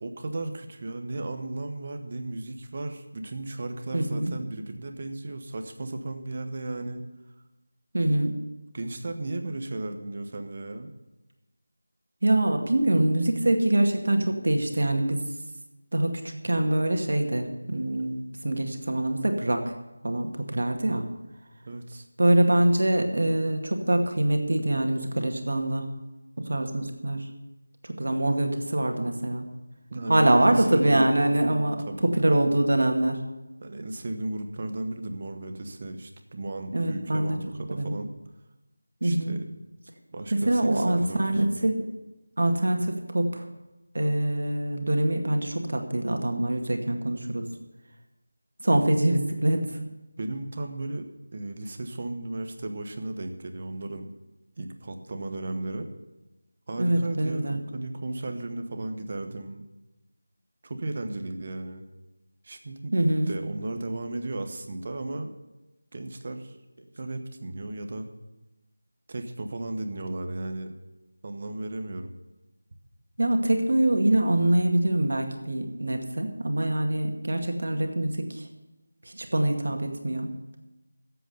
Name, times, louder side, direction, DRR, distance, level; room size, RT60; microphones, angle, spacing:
voice 1, 0.0-7.0 8.7-10.9 21.7-22.1 29.9-31.1 31.9-32.0 33.6-38.1 39.0-39.4 40.1-41.4 50.2-51.1 51.3-54.1 54.6-55.9 56.7-59.6 60.6-61.8 62.4-62.9 63.3-65.3 65.9-66.6 67.0-68.1 69.1-70.7 71.2-72.1, right 2 dB, 30° right, 6 dB, 1.2 m, -35 dB
voice 2, 3.9-4.3 7.9-8.4 12.2-15.2 15.9-19.7 20.0-21.1 22.2-25.9 26.4-27.3 27.8-29.5 30.1-33.2 36.7-37.4 37.7-37.9 39.0-39.4 40.3-41.9 42.4-43.5 43.9-47.5 48.6-49.8 56.8-57.6 62.9-63.3 73.2-78.5 79.1-80.3, right 1 dB, 65° right, 4 dB, 2.1 m, -24 dB
12.5 x 8.1 x 7.9 m, 1.0 s
figure-of-eight pair, 175°, 0 cm